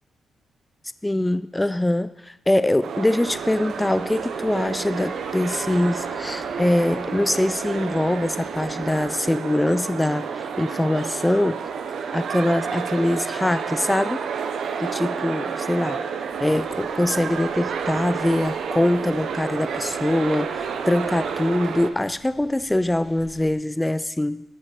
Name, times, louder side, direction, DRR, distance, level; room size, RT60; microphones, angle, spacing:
voice 1, 1.0-11.6 12.1-14.2 14.8-16.0 16.4-24.4, left 1 dB, 10° left, 14 dB, 0.3 m, -23 dB
sound 1, 2.8-21.9, right 6 dB, 75° right, 0.7 m, -30 dB
sound 2, 3.2-9.1, left 3 dB, 45° left, 1.0 m, -46 dB
sound 3, 16.3-23.5, left 1 dB, 60° left, 2.5 m, -52 dB
11.5 x 5.1 x 4.3 m, 0.98 s
cardioid pair, 65°, 0 cm